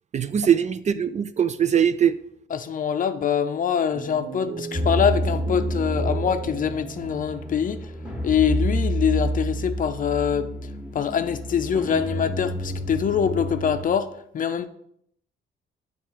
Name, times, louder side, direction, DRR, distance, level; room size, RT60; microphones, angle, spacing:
voice 1, 0.1-2.2, right 8 dB, 35° right, 0.4 m, -21 dB
voice 2, 2.5-7.8 8.2-10.5 10.9-14.1 14.3-14.7, left 8 dB, 45° left, 0.5 m, -24 dB
sound 1, 3.9-7.6, right 5 dB, 75° right, 1.3 m, -37 dB
sound 2, 4.7-13.9, equal, 5° right, 1.3 m, -29 dB
7.2 x 3.4 x 4.9 m
cardioid pair, 90°, 20 cm